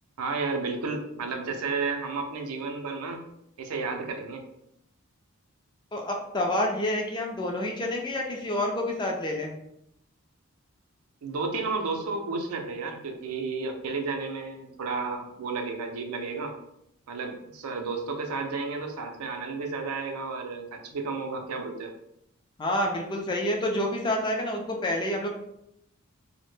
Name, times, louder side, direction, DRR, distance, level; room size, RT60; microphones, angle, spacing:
voice 1, 0.2-3.2 3.6-4.4 11.2-16.5 17.1-21.9, right 4 dB, 90° right, 4 dB, 0.4 m, -32 dB
voice 2, 5.9-9.6 22.6-25.3, left 1 dB, 20° left, 1 dB, 0.3 m, -28 dB
2.1 x 2.0 x 3.0 m, 0.79 s
head